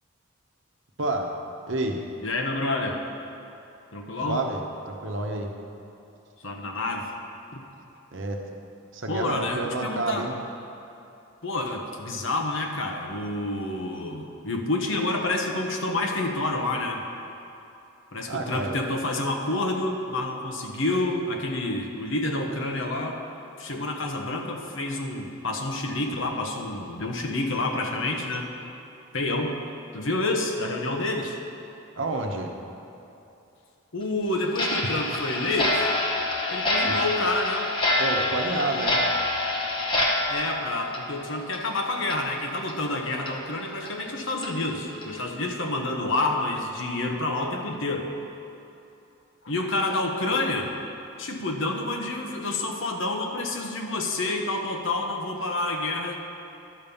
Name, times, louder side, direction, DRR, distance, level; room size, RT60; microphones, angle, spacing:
voice 1, 1.0-1.3 1.7-2.0 4.3-5.5 8.1-8.4 8.9-10.3 18.3-18.8 32.0-32.5 36.8-37.0 38.0-39.0, right 2 dB, 65° right, 2 dB, 0.9 m, -29 dB
voice 2, 2.2-3.0 3.9-4.4 6.4-7.1 7.5-7.6 9.1-10.3 11.4-17.0 18.1-23.2 23.6-28.5 29.1-29.6 29.9-31.4 33.9-36.0 36.5-37.7 40.3-48.1 49.4-50.7 51.2-56.2, left 2 dB, 65° left, 2 dB, 1.0 m, -28 dB
Clock, 34.5-41.7 42.0-42.2 42.7-42.8 43.3-43.4 43.8-43.9 44.4-44.5 45.0-45.2, left 2 dB, 20° left, 0.9 m, -26 dB
11.5 x 5.3 x 7.0 m, 2.9 s
head